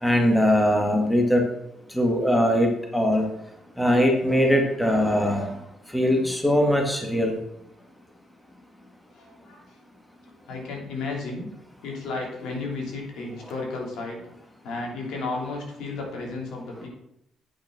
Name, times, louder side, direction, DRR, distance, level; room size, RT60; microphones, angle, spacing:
voice 1, 0.0-1.4 1.9-3.3 3.8-5.5 5.9-7.4, equal, 5° left, 1 dB, 2.1 m, -21 dB
voice 2, 9.1-9.6 10.5-11.4 11.8-14.2 14.6-16.9, left 3 dB, 85° left, -1 dB, 3.1 m, -33 dB
8.8 x 6.3 x 6.1 m, 0.78 s
cardioid pair, 90°, 0 cm